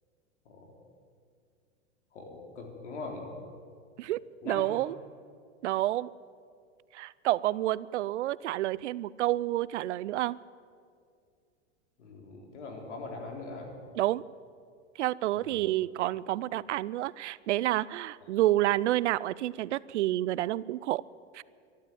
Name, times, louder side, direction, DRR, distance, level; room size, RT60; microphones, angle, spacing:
voice 1, 2.1-3.3 4.4-4.6 12.0-13.7 15.5-15.6, left 3 dB, 85° left, 2 dB, 3.7 m, -41 dB
voice 2, 4.0-5.0 5.6-6.1 6.9-10.4 14.0-14.2 15.0-21.0 21.3-21.4, right 15 dB, 80° right, 21 dB, 0.5 m, -29 dB
13.0 x 12.0 x 9.1 m, 2.2 s
hypercardioid pair, 115°, 34 cm